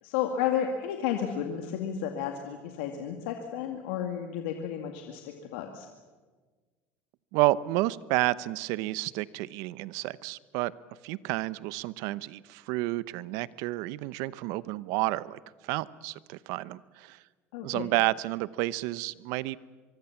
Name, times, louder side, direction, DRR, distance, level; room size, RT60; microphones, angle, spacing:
voice 1, 0.0-5.9 17.5-17.9, left 9 dB, 85° left, 4 dB, 2.1 m, -32 dB
voice 2, 7.3-10.7 11.0-17.2 17.6-19.6, right 18 dB, 75° right, 18 dB, 0.8 m, -30 dB
24.0 x 23.5 x 7.2 m, 1.4 s
supercardioid pair, 105°, 6 cm